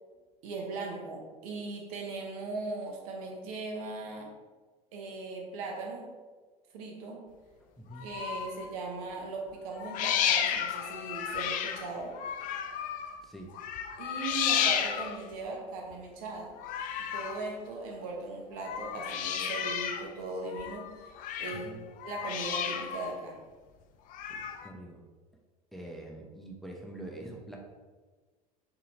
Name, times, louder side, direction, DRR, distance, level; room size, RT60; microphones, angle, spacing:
voice 1, 0.4-4.3 4.9-6.1 6.7-7.3 8.0-12.2 14.0-16.6 17.0-21.1 21.4-21.7 22.0-23.4, right 3 dB, 65° right, 0 dB, 0.9 m, -39 dB
voice 2, 7.6-8.1 13.2-13.6 21.5-21.8 24.3-25.0 25.7-27.6, right 1 dB, ahead, 0 dB, 0.7 m, -45 dB
sound 1, 7.9-8.7 9.7-13.2 13.5-15.3 16.6-17.5 18.5-20.1 20.4-21.7 22.0-23.1 24.1-24.7, left 9 dB, 45° left, 0.4 m, -33 dB
4.1 x 3.8 x 2.7 m, 1.4 s
figure-of-eight pair, 70°, 20 cm